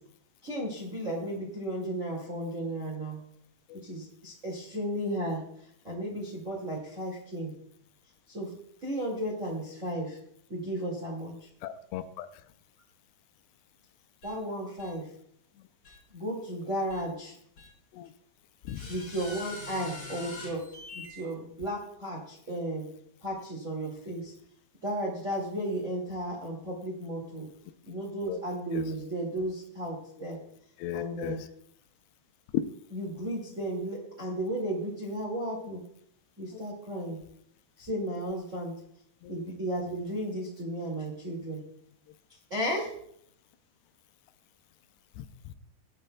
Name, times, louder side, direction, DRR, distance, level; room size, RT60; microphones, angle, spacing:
voice 1, 0.4-3.2 3.8-5.4 5.8-7.5 8.3-8.5 8.8-10.2 10.5-11.5 14.2-15.1 16.1-17.3 18.9-20.6 20.9-22.9 23.2-24.3 24.8-27.5 27.9-30.4 30.9-31.4 32.9-35.8 36.4-37.2 37.8-38.7 39.3-41.6 42.5-42.9, right 1 dB, 30° right, -2 dB, 1.4 m, -34 dB
voice 2, 11.6-12.3 17.9-18.1 18.7-18.9 28.3-28.4 28.7-28.8 30.8-31.4 39.2-39.4 45.2-45.5, left 11 dB, 85° left, 10 dB, 2.6 m, -38 dB
sound 1, 14.2-14.3 14.8-14.9 15.8-16.0 16.9-17.0 17.6-17.7 18.7-21.2, left 2 dB, 25° left, 4.2 m, -43 dB
22.0 x 8.9 x 2.2 m, 0.68 s
omnidirectional pair, 4.8 m